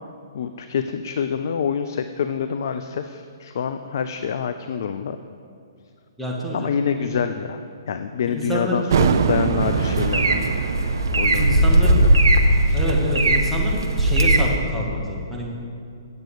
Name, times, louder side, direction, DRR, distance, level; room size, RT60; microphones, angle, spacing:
voice 1, 0.3-5.2 6.5-10.7 11.2-12.1 12.6-12.8, left 7 dB, 55° left, 9 dB, 0.4 m, -27 dB
voice 2, 6.2-6.7 7.0-7.1 8.3-8.9 11.4-12.1 12.7-15.5, equal, ahead, -5 dB, 1.6 m, -26 dB
sound 1, 8.9-14.2, right 6 dB, 55° right, 0.4 m, -25 dB
sound 2, 9.6-14.6, right 1 dB, 75° right, 0.8 m, -19 dB
8.6 x 7.4 x 5.0 m, 2.4 s
figure-of-eight pair, 125°, 2 cm